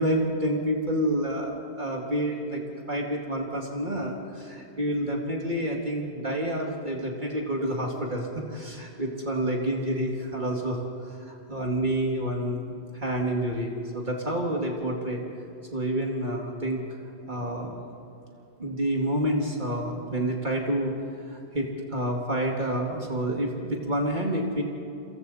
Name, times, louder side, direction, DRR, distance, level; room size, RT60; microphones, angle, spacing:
voice 1, 0.0-2.6 2.9-10.8 11.1-12.6 12.9-15.2 15.7-17.0 17.3-17.7 18.6-20.9 21.3-24.6, right 1 dB, 45° right, 0 dB, 2.5 m, -28 dB
29.5 x 23.5 x 4.2 m, 2.6 s
omnidirectional pair, 1.1 m